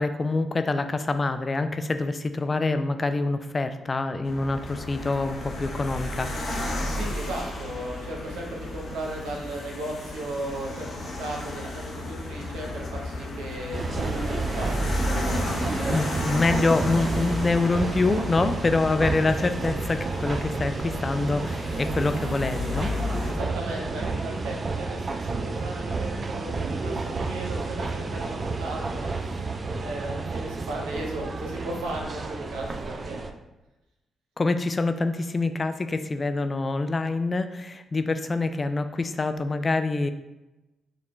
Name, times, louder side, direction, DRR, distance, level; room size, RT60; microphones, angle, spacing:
voice 1, 0.0-6.3 15.9-22.9 34.4-40.1, left 3 dB, 35° left, 9 dB, 0.3 m, -26 dB
sound 1, 4.2-23.3, left 1 dB, 60° left, 0.7 m, -33 dB
voice 2, 6.9-14.9 15.7-16.0 23.3-29.0 29.7-33.3, right 1 dB, 80° right, -2 dB, 0.7 m, -36 dB
sound 2, 13.7-33.3, right 3 dB, 45° right, 0.3 m, -31 dB
4.9 x 2.1 x 3.0 m, 1.0 s
hypercardioid pair, 45°, 0 cm